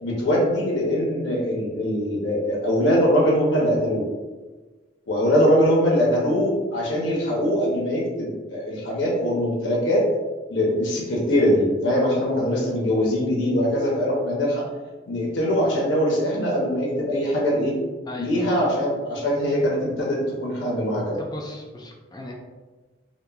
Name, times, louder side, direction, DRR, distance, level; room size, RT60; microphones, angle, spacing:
voice 1, 0.0-4.0 5.1-10.0 10.5-14.6 15.1-17.8 18.2-21.2, equal, 85° left, -3 dB, 0.7 m, -22 dB
voice 2, 18.1-18.5 21.2-22.3, left 1 dB, 20° left, 0 dB, 0.3 m, -37 dB
2.8 x 2.1 x 2.3 m, 1.3 s
head